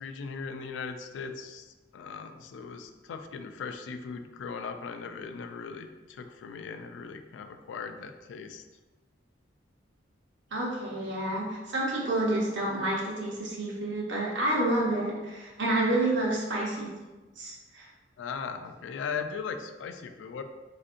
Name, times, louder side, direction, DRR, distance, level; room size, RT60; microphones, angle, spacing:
voice 1, 0.0-8.6 18.2-20.4, left 5 dB, 85° left, 7 dB, 0.3 m, -38 dB
voice 2, 10.5-16.9 17.4-17.9, right 1 dB, 85° right, -3 dB, 0.8 m, -29 dB
3.6 x 2.5 x 2.5 m, 1.2 s
head